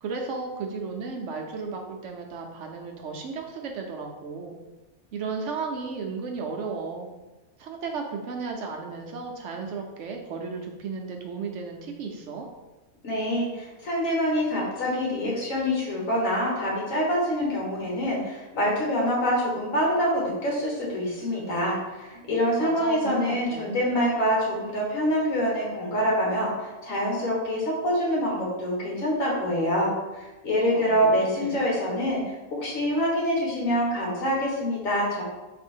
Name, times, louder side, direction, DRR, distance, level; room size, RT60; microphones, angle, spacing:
voice 1, 0.0-4.5 5.1-7.1 7.6-12.5 22.6-23.8 30.7-31.1 31.4-31.6, right 4 dB, 70° right, 2 dB, 0.8 m, -34 dB
voice 2, 13.0-35.2, equal, 70° left, -3 dB, 1.6 m, -26 dB
4.2 x 2.6 x 4.4 m, 1.1 s
omnidirectional pair, 1.4 m